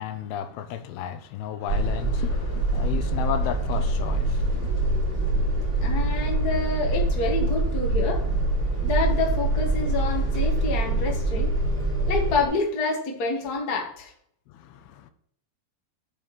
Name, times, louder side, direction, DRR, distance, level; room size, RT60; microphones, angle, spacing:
voice 1, 0.0-4.9 14.5-15.1, left 9 dB, 80° left, 2.5 m, -34 dB
sound 1, 1.7-12.5, right 2 dB, 25° right, 3.8 m, -24 dB
voice 2, 5.8-8.2 8.8-11.5 12.1-14.1, left 3 dB, 50° left, 1.1 m, -27 dB
9.2 x 5.2 x 6.3 m
omnidirectional pair, 4.6 m